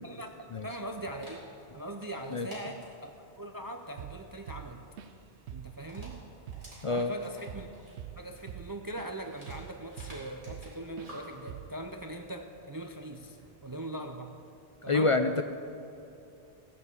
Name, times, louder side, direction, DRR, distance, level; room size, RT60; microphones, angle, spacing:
voice 1, 0.0-1.5 1.7-3.1 3.4-4.8 5.5-6.2 6.9-7.7 8.1-14.3 14.8-15.1, right 1 dB, 25° right, 4 dB, 0.5 m, -41 dB
Dog, 0.7-13.5, right 1 dB, 50° right, 3.8 m, -54 dB
Drum kit / Drum, 4.0-4.2 4.5-5.2 5.5-5.7 6.0-9.1 9.5-10.7 11.0-11.2 11.5-11.8, right 10 dB, 90° right, 0.9 m, -44 dB
voice 2, 14.9-15.4, left 3 dB, 45° left, 7 dB, 0.4 m, -26 dB
15.0 x 7.3 x 8.2 m, 2.7 s
omnidirectional pair, 1.1 m